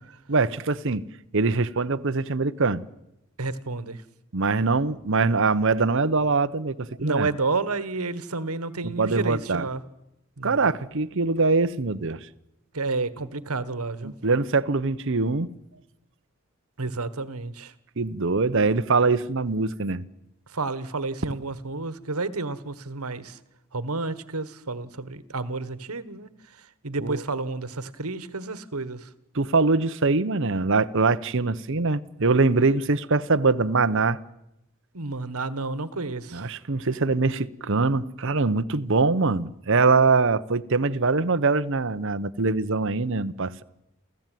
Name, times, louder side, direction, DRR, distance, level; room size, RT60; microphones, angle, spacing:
voice 1, 0.3-1.0 1.3-2.8 4.3-7.3 8.8-9.7 10.4-12.3 14.0-15.5 18.0-20.0 27.0-27.2 29.3-34.2 36.3-43.6, right 3 dB, 60° right, 0.9 m, -23 dB
voice 2, 3.4-4.0 7.0-9.8 10.4-10.6 12.7-14.1 16.8-17.7 20.5-23.4 23.7-26.3 26.8-29.1 34.9-36.5, right 3 dB, 80° right, 1.5 m, -30 dB
29.0 x 14.5 x 9.3 m
head